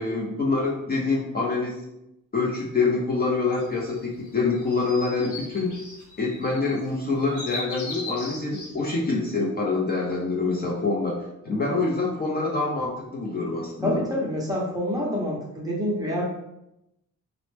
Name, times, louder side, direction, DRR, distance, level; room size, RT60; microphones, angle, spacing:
voice 1, 0.0-1.8 2.3-5.7 6.2-11.2 11.4-14.0, left 3 dB, 30° left, -3 dB, 0.5 m, -26 dB
sound 1, 3.5-8.7, left 3 dB, 70° left, 0.9 m, -39 dB
voice 2, 13.8-16.2, equal, 10° right, -5 dB, 0.7 m, -27 dB
4.1 x 2.0 x 3.2 m, 0.87 s
wide cardioid pair, 165°, 31 cm